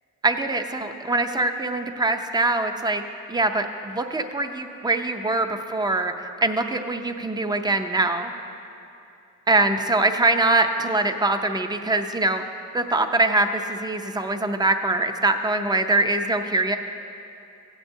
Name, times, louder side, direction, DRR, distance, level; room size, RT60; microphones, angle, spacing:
voice 1, 0.2-3.0 3.3-8.3 9.5-12.4 12.7-16.8, right 2 dB, 15° right, 6 dB, 0.5 m, -23 dB
16.0 x 8.9 x 2.7 m, 2.7 s
cardioid pair, 110°, 30 cm